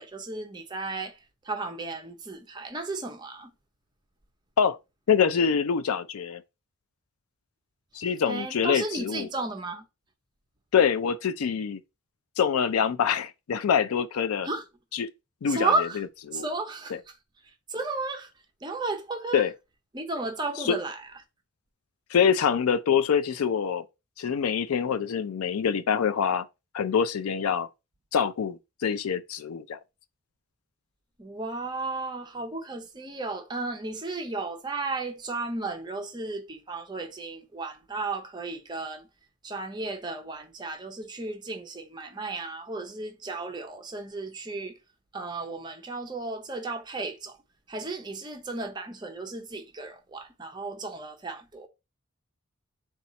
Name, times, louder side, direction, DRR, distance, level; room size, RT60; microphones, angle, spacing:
voice 1, 0.0-3.5 8.3-9.8 14.4-14.6 15.5-16.0 16.3-17.1 17.4-18.3 18.6-19.5 19.9-21.1 31.2-39.1 39.4-44.8 45.1-47.4 47.7-51.7, right 3 dB, 20° right, 0.6 m, -34 dB
voice 2, 5.1-6.4 7.9-9.3 10.7-11.8 12.4-14.5 14.9-15.1 15.4-15.7 16.3-16.4 19.3-19.5 20.7-20.8 22.1-23.8 24.2-26.5 26.7-27.7 28.1-29.8, left 7 dB, 80° left, 0.4 m, -25 dB
4.2 x 2.3 x 3.9 m
head